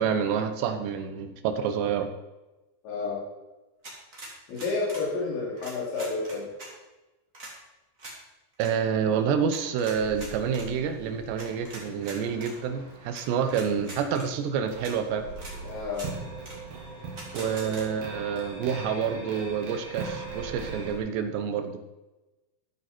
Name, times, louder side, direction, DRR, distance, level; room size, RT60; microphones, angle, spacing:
voice 1, 0.0-2.1 8.6-15.3 17.3-21.8, right 7 dB, 80° right, 8 dB, 3.2 m, -28 dB
voice 2, 2.8-3.2 4.5-6.5 13.3-13.5 15.6-16.1, left 3 dB, 85° left, -5 dB, 5.3 m, -30 dB
sound 1, 3.8-5.1 5.6-6.7 7.3-7.5 8.0-8.2 8.5-8.7 9.5-10.7 11.4-12.5 13.1-13.2 13.5-14.3 14.8-14.9 15.4-15.5 15.9-16.1 16.4-16.6 17.2-17.8, right 2 dB, 20° right, 2.5 m, -43 dB
sound 2, 9.9-21.0, right 4 dB, 45° right, 2.6 m, -41 dB
14.0 x 9.4 x 4.4 m, 1.1 s
omnidirectional pair, 5.0 m